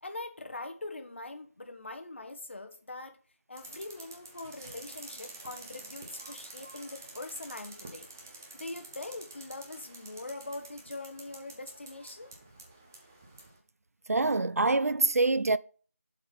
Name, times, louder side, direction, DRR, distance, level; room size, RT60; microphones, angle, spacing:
voice 1, 0.0-3.2 3.5-8.1 8.5-12.3, left 2 dB, 50° left, 1.3 m, -42 dB
sound 1, 3.6-13.6, right 2 dB, 10° right, 0.6 m, -49 dB
voice 2, 14.1-15.6, right 3 dB, 70° right, 0.4 m, -25 dB
7.5 x 4.6 x 5.5 m
figure-of-eight pair, 170°, 8 cm